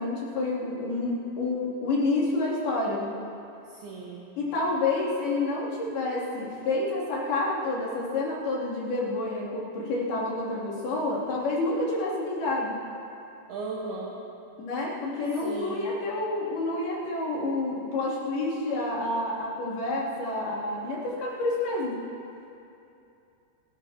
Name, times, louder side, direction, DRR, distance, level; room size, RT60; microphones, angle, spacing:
voice 1, 0.0-3.1 4.4-12.7 14.6-22.0, left 2 dB, 60° left, -7 dB, 4.7 m, -29 dB
voice 2, 3.7-4.3 13.5-14.2 15.4-15.9, right 3 dB, 65° right, -4 dB, 2.9 m, -36 dB
29.0 x 13.0 x 2.9 m, 2.7 s
omnidirectional pair, 5.3 m